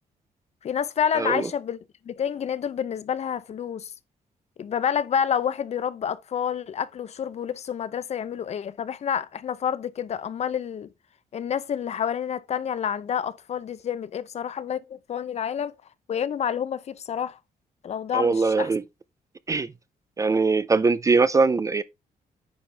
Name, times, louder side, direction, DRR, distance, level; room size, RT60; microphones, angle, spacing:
voice 1, 0.6-1.8 2.1-3.9 4.6-10.9 11.3-15.7 16.1-17.4 17.8-18.7, left 8 dB, 45° left, 0.7 m, -28 dB
voice 2, 1.1-1.5 18.1-18.8 19.5-19.7 20.2-21.8, right 4 dB, 20° right, 0.4 m, -21 dB
9.7 x 5.9 x 3.3 m
cardioid pair, 160°, 15 cm